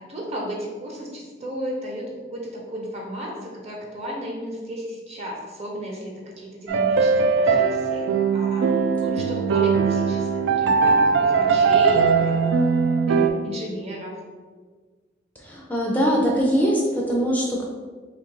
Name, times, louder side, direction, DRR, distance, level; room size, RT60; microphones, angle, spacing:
voice 1, 0.1-8.1 8.3-8.7 9.0-11.0 11.2-12.4 13.1-14.1, right 1 dB, 35° right, -2 dB, 0.9 m, -34 dB
sound 1, 6.7-13.3, right 5 dB, 75° right, 0.3 m, -20 dB
voice 2, 15.4-17.6, equal, 10° left, -2 dB, 0.4 m, -22 dB
3.2 x 2.5 x 4.4 m, 1.5 s
head